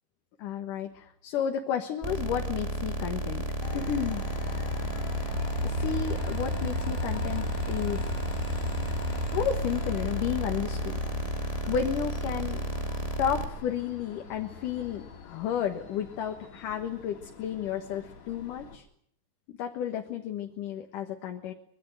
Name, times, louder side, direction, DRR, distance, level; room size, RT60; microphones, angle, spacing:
voice 1, 0.4-3.5 3.7-4.2 5.0-5.1 5.6-8.1 9.3-11.0 11.4-12.6 13.2-18.9 19.5-21.5, left 9 dB, 85° left, 4 dB, 3.1 m, -32 dB
sound 1, 2.0-13.5, right 2 dB, 15° right, 1.8 m, -33 dB
Train, 3.6-18.8, left 2 dB, 60° left, 3.9 m, -38 dB
24.5 x 22.0 x 7.9 m, 0.66 s
omnidirectional pair, 3.6 m